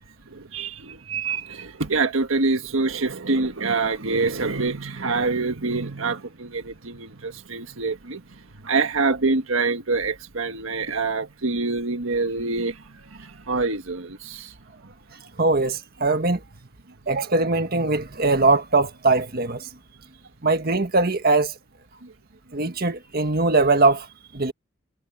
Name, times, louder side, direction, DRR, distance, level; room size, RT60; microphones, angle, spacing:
voice 1, 0.3-14.6 14.8-14.9 22.0-22.1 22.7-22.8, right 3 dB, 80° right, 1.6 m, -26 dB
voice 2, 15.4-16.4 17.1-19.7 20.4-21.6 22.5-24.1 24.3-24.5, right 3 dB, 50° right, 1.7 m, -21 dB
head